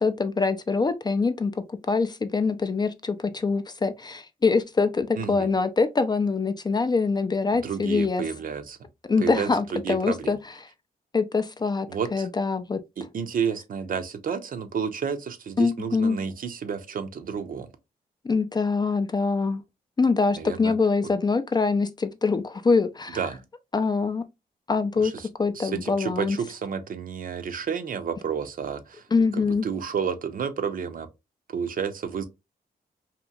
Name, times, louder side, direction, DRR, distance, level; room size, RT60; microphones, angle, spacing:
voice 1, 0.0-8.2 9.1-10.4 11.1-12.8 15.6-16.2 18.2-19.6 20.0-23.2 23.7-24.2 24.7-25.1 25.4-26.4 29.1-29.7, left 4 dB, 25° left, 0.3 m, -24 dB
voice 2, 5.2-5.5 7.5-8.8 9.2-10.3 11.9-12.3 13.0-17.7 20.4-20.7 23.1-23.4 25.0-25.3 25.6-29.0 29.3-31.1 31.5-32.3, right 7 dB, 60° right, 0.5 m, -31 dB
2.8 x 2.4 x 2.3 m
cardioid pair, 75°, 16 cm